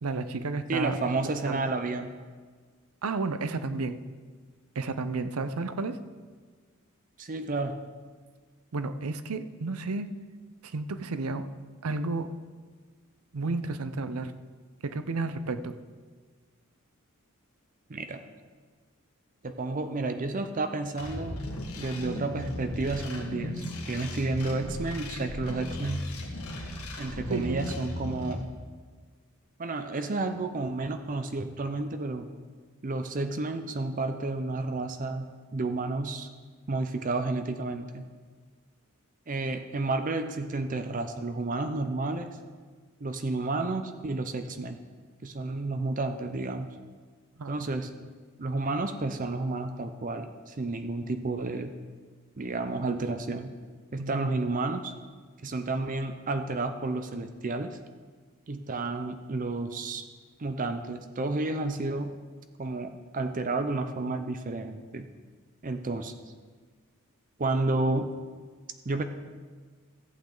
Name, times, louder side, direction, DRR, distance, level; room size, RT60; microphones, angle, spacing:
voice 1, 0.0-1.6 3.0-4.0 4.7-6.0 8.7-10.1 10.6-11.4 11.8-12.3 13.3-14.3 14.8-15.8 27.3-27.7 47.4-47.5 54.0-54.2, right 3 dB, 90° right, 11 dB, 0.6 m, -32 dB
voice 2, 0.7-2.1 7.2-7.8 17.9-18.2 19.4-21.4 21.8-26.1 27.0-28.4 29.6-32.3 32.8-35.3 35.5-36.3 36.7-38.0 39.3-42.3 43.0-44.8 45.2-46.7 47.5-47.9 48.4-51.7 52.4-53.5 53.9-54.9 55.4-57.8 58.5-60.0 60.4-62.1 62.6-65.1 65.6-66.1 67.4-68.1 68.9-69.0, right 2 dB, 40° right, 8 dB, 0.5 m, -31 dB
sound 1, 21.0-28.3, left 1 dB, 90° left, 1.9 m, -36 dB
14.5 x 8.7 x 3.9 m, 1.5 s
head